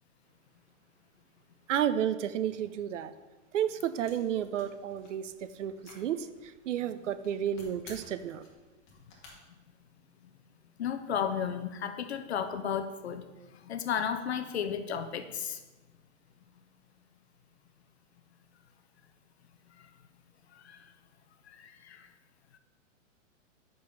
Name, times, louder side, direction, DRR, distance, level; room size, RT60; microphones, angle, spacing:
voice 1, 1.7-3.1 3.5-8.4, right 10 dB, 70° right, 13 dB, 0.6 m, -32 dB
sound 1, 4.0-9.3, left 3 dB, 35° left, 1.6 m, -55 dB
voice 2, 10.8-13.2 13.5-15.6 19.8-19.9 20.5-20.9 21.5-22.1, left 8 dB, 55° left, 9 dB, 0.6 m, -34 dB
5.4 x 5.2 x 5.8 m, 1.2 s
hypercardioid pair, 175°, 38 cm